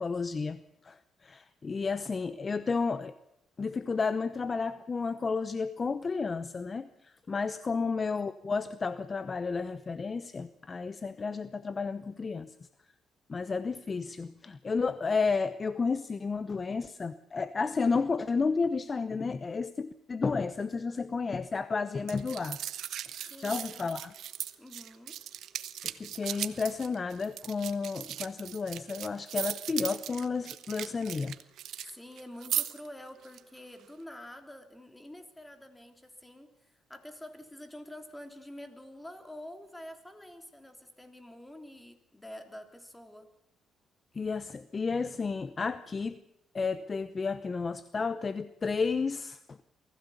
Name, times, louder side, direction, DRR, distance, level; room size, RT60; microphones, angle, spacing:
voice 1, 0.0-3.1 3.6-12.5 13.3-22.6 23.4-24.1 25.8-31.4 44.1-46.2 46.5-49.6, left 4 dB, 35° left, 14 dB, 0.8 m, -32 dB
voice 2, 7.7-8.1 23.2-23.9 24.6-25.2 31.8-43.3, left 1 dB, 10° left, 6 dB, 3.3 m, -47 dB
sound 1, 22.1-31.9 32.2-32.9 33.2-33.4, right 11 dB, 75° right, 1.1 m, -38 dB
24.0 x 16.0 x 7.2 m, 0.82 s
cardioid pair, 90°, 0 cm